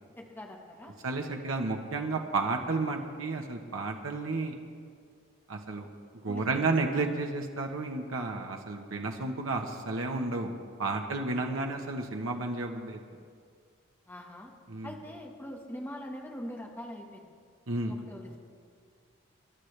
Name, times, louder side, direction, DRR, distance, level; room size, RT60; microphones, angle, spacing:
voice 1, 0.2-1.0 6.3-6.6 11.1-11.8 14.1-14.5 14.8-17.3 17.9-18.4, equal, 10° left, 1 dB, 1.4 m, -43 dB
voice 2, 1.0-4.5 5.5-5.9 6.2-10.5 10.8-13.0 14.7-14.9 17.7-18.0, right 3 dB, 80° right, 2 dB, 1.1 m, -32 dB
26.5 x 12.0 x 3.3 m, 2.1 s
head